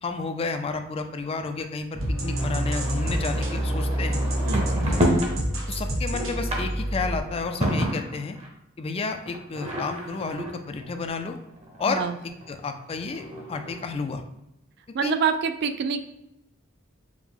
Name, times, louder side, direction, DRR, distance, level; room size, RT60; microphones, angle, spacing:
voice 1, 0.0-4.2 5.7-8.4 8.8-11.4 11.8-12.0 12.5-14.2 15.0-15.1, left 4 dB, 30° left, 7 dB, 0.3 m, -31 dB
sound 1, 1.9-7.2, right 1 dB, 80° right, 1.0 m, -27 dB
sound 2, 2.4-5.4 5.8-8.5 9.3-11.8 12.4-12.5 12.7-12.8 13.0-13.9, equal, 35° right, 0.8 m, -30 dB
voice 2, 4.5-4.9 11.9-12.2 14.9-16.0, right 6 dB, 60° right, 9 dB, 0.3 m, -26 dB
4.8 x 2.1 x 3.5 m, 0.86 s
head